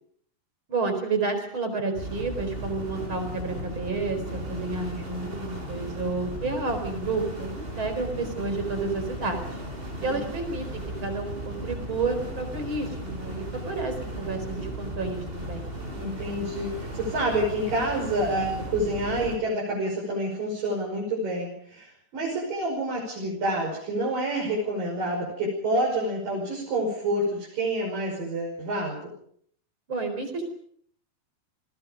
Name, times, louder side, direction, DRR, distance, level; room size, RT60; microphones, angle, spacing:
voice 1, 0.7-9.5 10.0-15.6 29.9-30.5, right 3 dB, 35° right, 7 dB, 4.9 m, -30 dB
sound 1, 1.9-19.4, right 1 dB, 15° right, 5.2 m, -36 dB
voice 2, 16.0-16.7 16.9-29.1, right 1 dB, 60° right, -3 dB, 7.3 m, -28 dB
29.5 x 20.5 x 5.2 m, 0.65 s
omnidirectional pair, 4.3 m